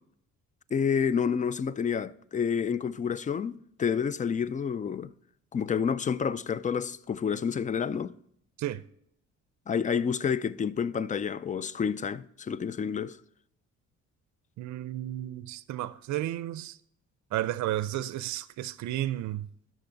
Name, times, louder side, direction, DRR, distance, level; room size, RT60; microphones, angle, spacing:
voice 1, 0.7-5.1 5.5-8.2 9.7-13.2, left 7 dB, 25° left, 0.4 m, -29 dB
voice 2, 14.6-16.8 17.3-19.5, right 14 dB, 70° right, 0.5 m, -32 dB
11.5 x 6.3 x 3.9 m
cardioid pair, 90°, 30 cm